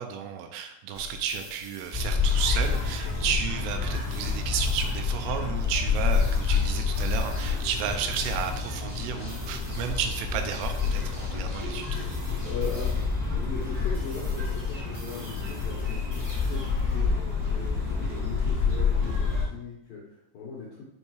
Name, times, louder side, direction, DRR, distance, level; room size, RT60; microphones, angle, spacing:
voice 1, 0.0-12.1, right 8 dB, 85° right, 5 dB, 3.2 m, -32 dB
sound 1, 0.9-17.0, left 1 dB, 40° right, 2.0 m, -50 dB
sound 2, 1.9-19.4, left 5 dB, 5° right, 1.5 m, -28 dB
voice 2, 12.4-12.9 13.4-20.9, left 4 dB, 70° left, -4 dB, 2.2 m, -39 dB
7.0 x 5.4 x 4.7 m, 0.82 s
omnidirectional pair, 5.6 m